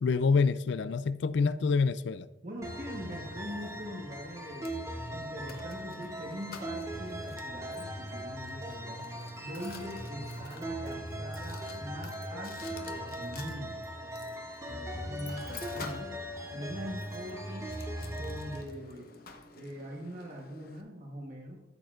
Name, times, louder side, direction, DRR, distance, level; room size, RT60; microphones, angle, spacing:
voice 1, 0.0-2.3, left 4 dB, 65° left, 0.4 m, -27 dB
voice 2, 2.4-4.7 5.1-9.0 9.4-12.8 13.2-13.8 14.6-16.1 16.5-17.7 18.1-19.1 19.5-21.6, equal, 45° right, 1.1 m, -42 dB
Mechanisms, 2.6-20.8, left 3 dB, 50° left, 0.9 m, -50 dB
sound 1, 2.6-18.6, equal, 15° right, 0.9 m, -39 dB
13.5 x 7.8 x 2.5 m
head